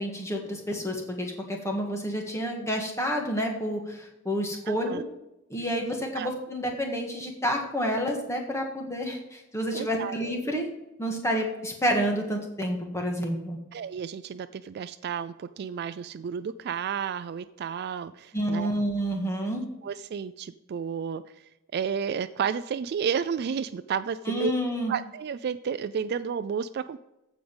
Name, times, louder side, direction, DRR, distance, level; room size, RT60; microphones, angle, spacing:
voice 1, 0.0-5.0 5.5-10.7 11.0-13.6 18.3-19.6 24.3-24.9, equal, 15° left, 1 dB, 1.7 m, -29 dB
voice 2, 4.7-5.0 6.1-6.3 9.7-10.2 13.7-18.7 19.8-21.2 21.7-24.5 24.9-27.0, right 7 dB, 50° right, 14 dB, 0.3 m, -31 dB
15.0 x 5.1 x 5.3 m, 0.91 s
head